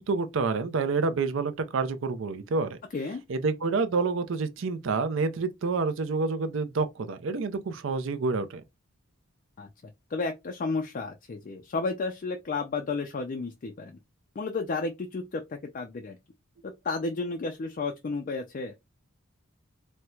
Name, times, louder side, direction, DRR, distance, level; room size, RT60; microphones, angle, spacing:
voice 1, 0.0-2.8 3.3-8.6, right 4 dB, 60° right, 0.5 m, -28 dB
voice 2, 9.6-14.0 14.4-16.2 16.6-18.7, left 3 dB, 40° left, 0.4 m, -32 dB
4.3 x 2.1 x 2.3 m
head